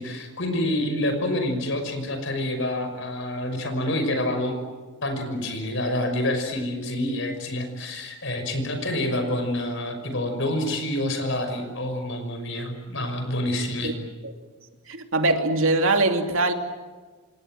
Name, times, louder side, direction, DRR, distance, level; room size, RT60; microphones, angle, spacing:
voice 1, 0.0-4.6 5.0-13.9, left 1 dB, 55° left, 6 dB, 5.9 m, -27 dB
voice 2, 14.9-16.5, right 2 dB, 65° right, 5 dB, 2.9 m, -22 dB
28.0 x 26.5 x 7.8 m, 1.4 s
head